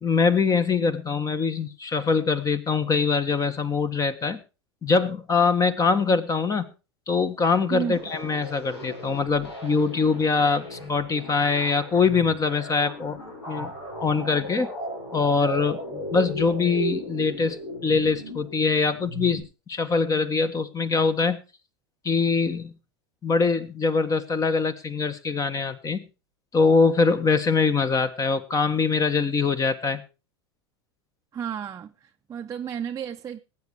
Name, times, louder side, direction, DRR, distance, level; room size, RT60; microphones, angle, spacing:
voice 1, 0.0-4.4 4.8-6.7 7.1-13.2 13.5-13.7 14.0-14.7 15.1-15.8 16.1-21.4 22.0-22.7 23.2-26.0 26.5-30.0, left 4 dB, 25° left, 1.6 m, -23 dB
voice 2, 7.7-8.1 31.3-33.4, right 8 dB, 25° right, 0.8 m, -32 dB
sound 1, 7.8-19.4, equal, 90° left, 5.6 m, -36 dB
18.5 x 8.6 x 4.8 m
hypercardioid pair, 90°, 14 cm